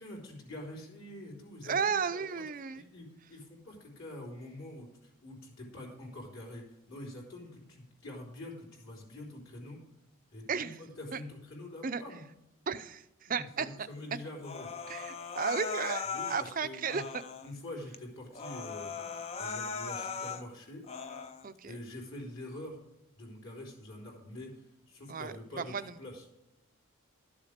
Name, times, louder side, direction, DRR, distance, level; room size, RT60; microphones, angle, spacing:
voice 1, 0.0-2.4 2.7-9.8 10.3-12.2 13.3-14.7 16.1-17.0 17.4-19.0 19.4-20.8 21.7-22.8 23.2-26.2, left 1 dB, 60° left, -2 dB, 3.7 m, -46 dB
voice 2, 1.6-2.8 10.5-10.8 11.1-11.2 11.8-12.0 12.7-13.7 14.9-17.2 21.4-21.8 25.1-25.9, right 6 dB, 40° right, 11 dB, 0.5 m, -34 dB
Human voice, 14.4-16.5 16.9-17.5 17.9-18.0 18.3-20.4 20.8-21.4, left 5 dB, 30° left, 0.5 m, -39 dB
12.5 x 7.2 x 5.1 m, 0.87 s
head